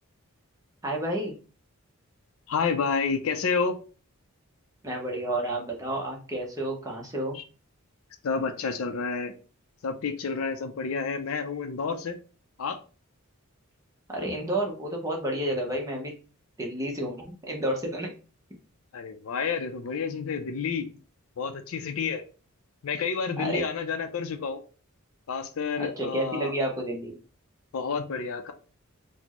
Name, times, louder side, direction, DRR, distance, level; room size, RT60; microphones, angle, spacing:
voice 1, 0.8-1.4 4.8-7.4 14.1-16.1 16.6-18.1 23.4-23.6 25.8-27.2, right 1 dB, 15° right, 0.6 m, -30 dB
voice 2, 2.5-3.8 7.3-7.4 8.2-9.3 9.8-12.2 12.6-12.8 18.9-20.9 21.4-22.2 22.8-24.6 25.3-26.5 27.7-28.5, left 5 dB, 70° left, 0.4 m, -29 dB
4.2 x 2.0 x 2.9 m
head